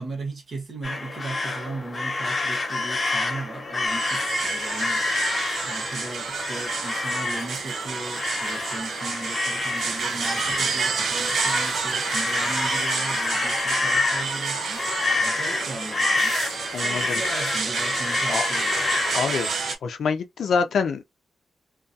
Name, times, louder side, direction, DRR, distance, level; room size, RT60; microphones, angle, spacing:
voice 1, 0.0-5.1 5.6-16.4 16.8-18.9, right 3 dB, 50° right, 1.0 m, -37 dB
sound 1, 0.8-19.5, left 3 dB, 30° left, 0.8 m, -28 dB
sound 2, 3.9-19.8, right 4 dB, 70° right, 0.5 m, -29 dB
voice 2, 16.7-17.0 18.3-18.4 19.1-19.5 19.8-21.0, left 5 dB, 85° left, 0.4 m, -25 dB
2.3 x 2.3 x 2.6 m
wide cardioid pair, 160°, 0 cm